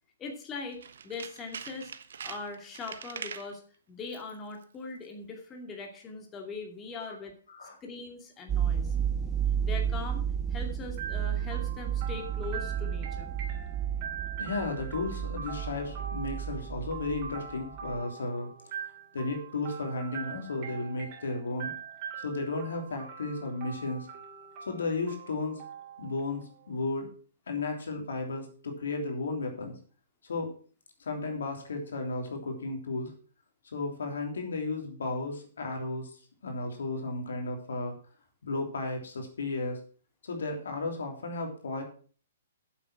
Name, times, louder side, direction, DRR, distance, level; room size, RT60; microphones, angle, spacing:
voice 1, 0.2-1.9 2.2-3.6 3.9-7.3 7.8-8.9 9.6-13.3, left 4 dB, 20° left, 2 dB, 2.4 m, -41 dB
Tools, 0.7-3.5 4.0-4.4 4.6-4.7, right 7 dB, 70° right, 0.9 m, -43 dB
sound 1, 8.5-17.5 17.8-18.0, right 8 dB, 20° right, 0.9 m, -32 dB
sound 2, 11.0-26.8, right 7 dB, 40° right, 3.0 m, -43 dB
voice 2, 14.4-21.7 22.2-24.1 24.7-25.6 26.0-27.1 27.5-29.8 30.2-30.5 31.0-33.1 33.6-38.0 38.4-39.8 40.2-41.8, left 3 dB, 75° left, 3 dB, 3.1 m, -34 dB
8.9 x 7.6 x 5.9 m, 0.41 s
hypercardioid pair, 130°, 0 cm